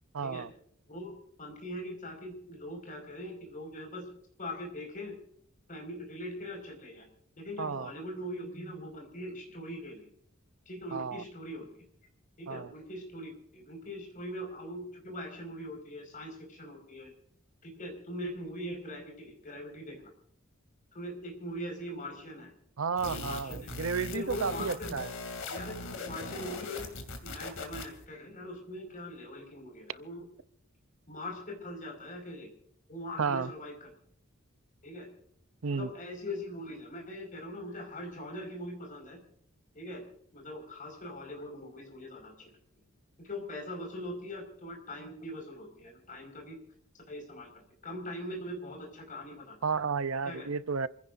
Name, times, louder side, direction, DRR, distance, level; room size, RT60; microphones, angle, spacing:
voice 1, 0.1-0.5 7.6-7.9 10.9-11.2 12.5-12.7 22.8-25.1 33.2-33.5 35.6-35.9 49.6-50.9, right 5 dB, 75° right, 0.7 m, -32 dB
voice 2, 0.9-4.1 4.4-5.2 5.7-7.1 7.4-10.1 10.6-11.8 12.4-17.1 17.6-20.1 20.9-22.5 23.0-25.0 25.4-26.9 27.2-30.2 31.1-32.5 32.9-33.9 34.8-35.1 35.7-39.2 39.7-40.0 40.3-42.5 43.2-46.6 47.1-49.6 50.2-50.5, left 1 dB, 40° left, 5.3 m, -41 dB
sound 1, 23.0-28.1, left 3 dB, 65° left, 2.7 m, -40 dB
28.0 x 16.0 x 2.6 m
head